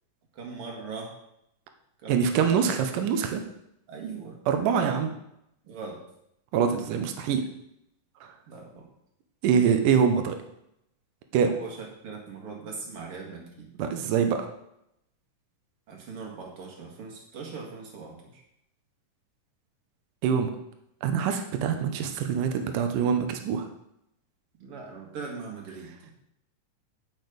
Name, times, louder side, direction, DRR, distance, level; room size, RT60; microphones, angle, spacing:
voice 1, 0.3-1.2 2.0-2.6 3.9-4.4 5.6-6.0 8.5-8.9 11.4-13.7 15.9-18.4 24.6-25.9, right 4 dB, 45° right, 0 dB, 2.6 m, -40 dB
voice 2, 2.1-3.4 4.5-5.1 6.5-7.5 8.2-8.3 9.4-10.4 11.3-11.5 13.8-14.5 20.2-20.5 21.0-23.7, right 7 dB, 75° right, 6 dB, 2.5 m, -24 dB
10.5 x 6.5 x 5.2 m, 0.78 s
omnidirectional pair, 3.8 m